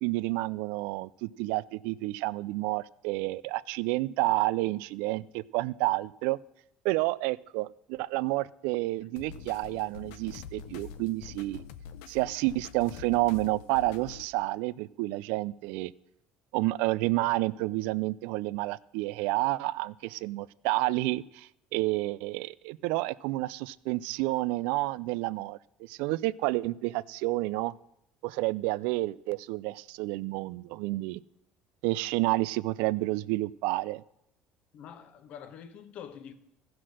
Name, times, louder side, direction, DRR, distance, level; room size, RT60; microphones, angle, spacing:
voice 1, 0.0-6.4 6.8-11.6 12.1-15.9 16.5-27.7 28.2-31.2 31.8-34.0, right 19 dB, 85° right, 0.3 m, -30 dB
sound 1, 9.2-14.2, left 7 dB, 90° left, 0.7 m, -45 dB
voice 2, 34.7-36.3, left 8 dB, 55° left, 1.0 m, -45 dB
15.0 x 6.0 x 6.3 m
cardioid pair, 135°, 3 cm